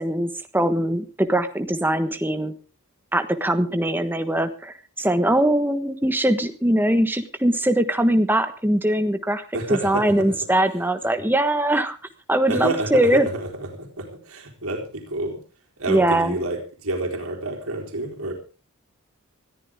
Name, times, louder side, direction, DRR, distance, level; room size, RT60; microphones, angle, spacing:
voice 1, 0.0-2.5 3.1-9.4 9.7-12.0 12.3-13.3 15.9-16.3, right 1 dB, 10° right, 8 dB, 1.3 m, -21 dB
voice 2, 9.5-10.5 12.5-15.4 15.8-18.3, right 2 dB, 70° right, 1 dB, 4.1 m, -29 dB
20.5 x 14.0 x 3.6 m, 0.34 s
head